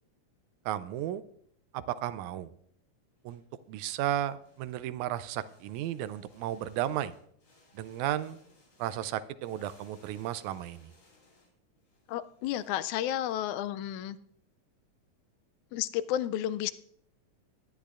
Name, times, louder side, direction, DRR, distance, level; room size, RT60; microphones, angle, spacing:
voice 1, 0.7-1.2 1.7-2.5 3.2-3.4 3.7-7.1 7.7-8.4 8.8-10.9, right 12 dB, 80° right, 1.9 m, -34 dB
sound 1, 3.1-13.3, left 2 dB, 55° left, 4.2 m, -64 dB
voice 2, 12.1-14.2 15.7-16.7, left 12 dB, 85° left, 1.9 m, -32 dB
18.5 x 10.5 x 2.5 m
omnidirectional pair, 3.4 m